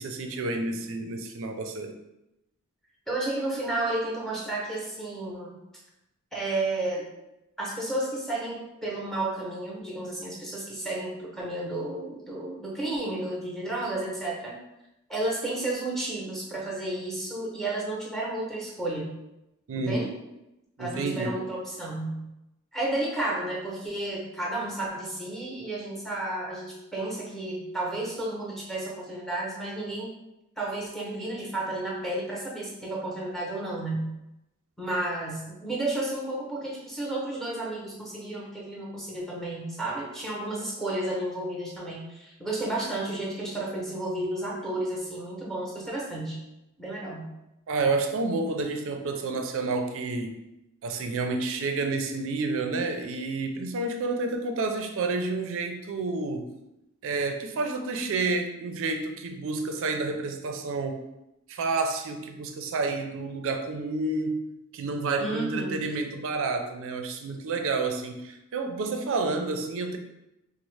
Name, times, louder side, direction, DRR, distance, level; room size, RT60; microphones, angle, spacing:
voice 1, 0.0-2.0 19.7-20.0 20.8-21.3 47.7-50.3 50.8-56.5 57.0-61.0 61.5-64.4 64.7-70.0, right 3 dB, 65° right, 5 dB, 0.4 m, -29 dB
voice 2, 3.1-5.6 6.3-7.1 7.6-14.5 15.1-19.2 19.7-20.1 20.8-22.3 22.7-30.1 30.6-34.1 34.8-46.4 46.8-47.3 65.2-65.8, right 2 dB, ahead, -4 dB, 0.7 m, -32 dB
3.9 x 2.0 x 3.2 m, 0.90 s
head